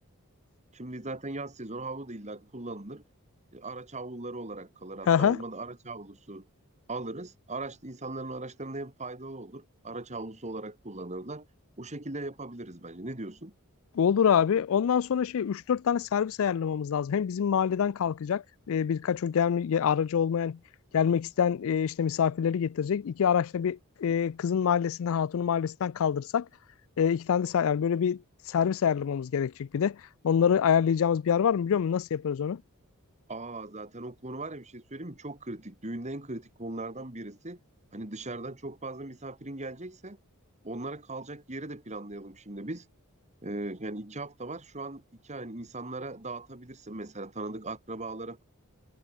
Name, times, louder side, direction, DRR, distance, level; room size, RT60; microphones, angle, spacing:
voice 1, 0.7-3.0 3.5-6.4 6.9-11.5 11.8-13.5 33.3-37.6 37.9-40.2 40.6-42.9 43.4-48.4, right 2 dB, 30° right, 2.7 m, -39 dB
voice 2, 5.1-5.4 13.9-20.6 20.9-26.5 27.0-28.2 28.5-30.0 30.2-32.6, left 7 dB, 65° left, 0.4 m, -26 dB
head